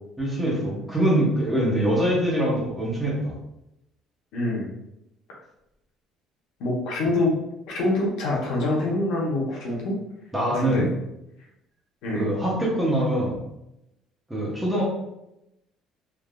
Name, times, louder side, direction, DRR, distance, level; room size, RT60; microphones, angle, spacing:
voice 1, 0.2-3.3 10.3-10.9 12.1-13.4 14.3-14.8, right 1 dB, 5° right, -5 dB, 0.7 m, -23 dB
voice 2, 4.3-4.7 6.6-7.4 7.7-10.0 10.4-10.9 12.0-12.3, left 2 dB, 70° left, -3 dB, 0.9 m, -25 dB
3.3 x 2.5 x 2.3 m, 0.86 s
cardioid pair, 175°, 0 cm